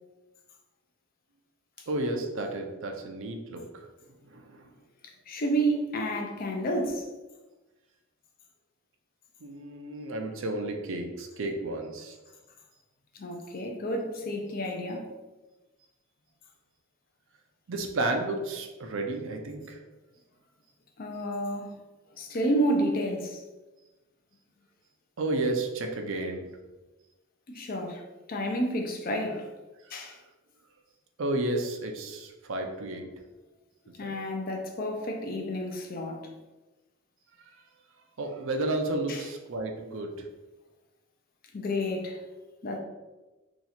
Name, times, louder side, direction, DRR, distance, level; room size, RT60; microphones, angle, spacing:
voice 1, 1.9-3.9 4.2-4.7 9.4-12.2 17.7-19.8 25.2-26.5 30.0-30.1 31.2-33.1 34.0-34.1 38.2-40.3, right 2 dB, 65° right, 0.5 m, -32 dB
voice 2, 5.3-7.1 13.1-15.1 21.0-21.8 22.2-23.4 27.5-28.0 28.3-29.5 29.9-30.2 34.0-36.2 39.1-39.2 41.5-42.2 42.6-42.8, right 1 dB, 40° left, 0.5 m, -30 dB
2.9 x 2.4 x 4.1 m
head